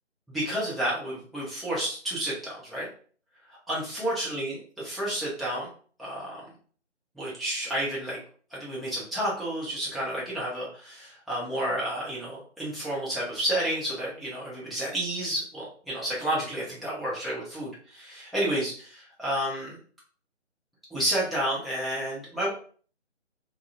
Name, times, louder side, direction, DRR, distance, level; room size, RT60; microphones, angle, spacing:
voice 1, 0.3-2.9 3.7-5.7 6.0-6.4 7.2-8.2 8.5-19.8 20.9-22.5, right 1 dB, ahead, -7 dB, 0.3 m, -31 dB
2.3 x 2.2 x 2.5 m, 0.44 s
figure-of-eight pair, 150°, 36 cm